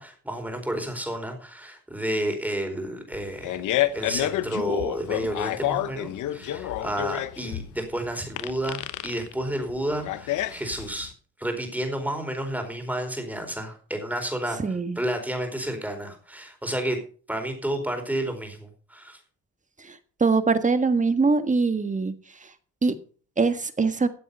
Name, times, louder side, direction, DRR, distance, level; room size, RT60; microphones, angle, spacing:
voice 1, 0.0-3.6 3.9-11.1 11.4-14.6 15.0-17.0 17.3-19.2, right 1 dB, 5° right, 4 dB, 4.6 m, -31 dB
Fart, 3.1-11.1, left 13 dB, 85° left, 1.0 m, -29 dB
voice 2, 14.6-15.0 19.9-22.1 22.8-22.9 23.4-24.1, right 4 dB, 25° right, 10 dB, 1.6 m, -23 dB
14.5 x 7.8 x 5.5 m, 0.41 s
cardioid pair, 90°, 30 cm